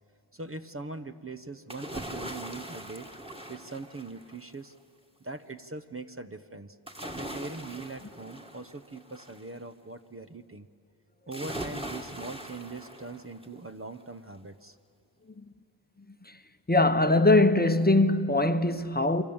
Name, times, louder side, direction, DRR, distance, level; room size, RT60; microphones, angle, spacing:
voice 1, 0.3-3.1 3.5-4.7 5.2-6.8 7.2-10.7 11.3-14.8, right 3 dB, 25° right, 1.0 m, -41 dB
sound 1, 1.7-4.5 6.9-9.5 11.3-13.6 14.0-14.1, right 1 dB, 10° right, 2.3 m, -41 dB
voice 2, 16.7-19.2, left 2 dB, 20° left, 1.0 m, -22 dB
28.5 x 24.0 x 8.8 m
wide cardioid pair, 75°, 49 cm